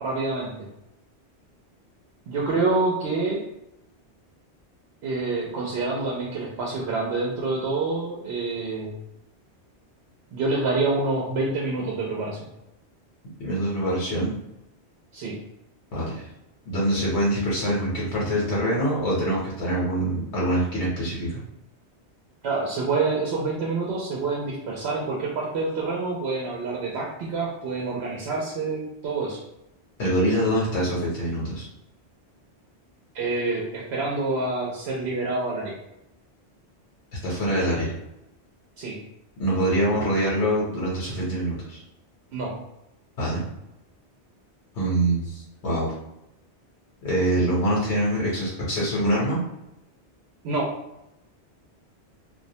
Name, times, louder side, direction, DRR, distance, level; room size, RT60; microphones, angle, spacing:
voice 1, 0.0-0.5 2.3-3.4 5.0-8.9 10.3-12.4 15.1-15.4 22.4-29.4 33.1-35.7 38.8-39.0 42.3-42.5 50.4-50.7, right 3 dB, 70° right, -3 dB, 0.8 m, -27 dB
voice 2, 13.4-14.3 15.9-16.3 16.7-21.3 30.0-31.7 37.2-37.9 39.4-41.8 43.2-43.4 44.7-45.9 47.0-49.4, right 1 dB, 80° left, -6 dB, 1.1 m, -24 dB
2.4 x 2.0 x 2.7 m, 0.87 s
omnidirectional pair, 1.1 m